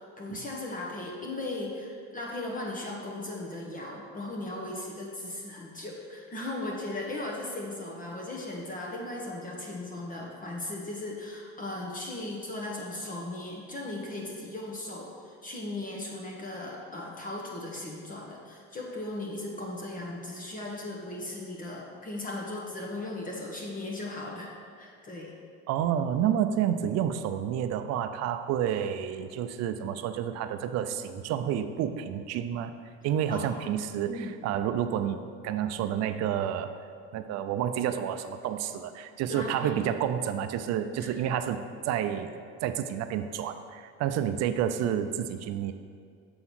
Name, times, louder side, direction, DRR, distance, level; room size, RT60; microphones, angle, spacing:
voice 1, 0.0-25.4 33.3-33.5 34.1-34.4 39.3-39.8 41.0-41.1, left 2 dB, 25° left, -2 dB, 1.1 m, -37 dB
voice 2, 25.7-32.7 33.0-35.2 35.4-36.8 37.1-42.3 42.6-45.7, right 9 dB, 55° right, 9 dB, 0.5 m, -29 dB
7.0 x 3.8 x 6.2 m, 2.2 s
supercardioid pair, 110°, 32 cm